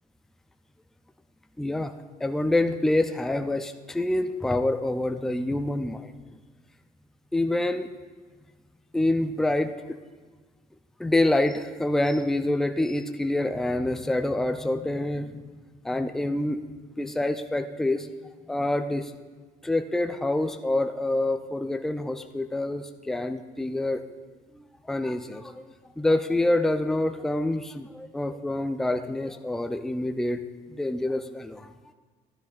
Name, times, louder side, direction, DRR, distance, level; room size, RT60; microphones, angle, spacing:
voice 1, 1.6-1.9 2.2-6.1 7.3-7.9 8.9-10.0 11.0-15.4 15.8-16.6 17.0-18.1 18.5-19.1 19.6-24.0 24.5-25.6 26.0-30.4 30.7-31.7, left 1 dB, 5° left, 7 dB, 0.4 m, -26 dB
12.5 x 12.0 x 2.4 m, 1.4 s
cardioid pair, 110°, 17 cm